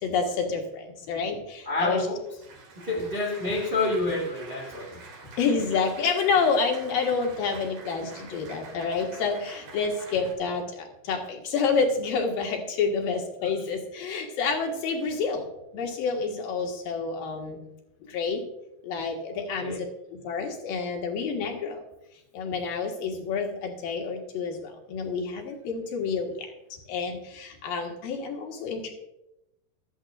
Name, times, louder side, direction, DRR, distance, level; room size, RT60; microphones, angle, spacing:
voice 1, 0.0-2.1 5.4-15.5 15.7-17.6 18.0-18.4 18.8-19.8 20.1-21.8 22.3-26.5 26.9-28.9, left 5 dB, 65° left, 1 dB, 3.2 m, -28 dB
voice 2, 1.6-2.2 2.8-4.9 13.4-13.7 19.5-19.8, left 2 dB, 40° right, -1 dB, 0.7 m, -28 dB
Applause, 1.9-10.3, right 4 dB, 65° right, 4.4 m, -47 dB
15.5 x 13.0 x 2.5 m, 0.88 s
omnidirectional pair, 4.7 m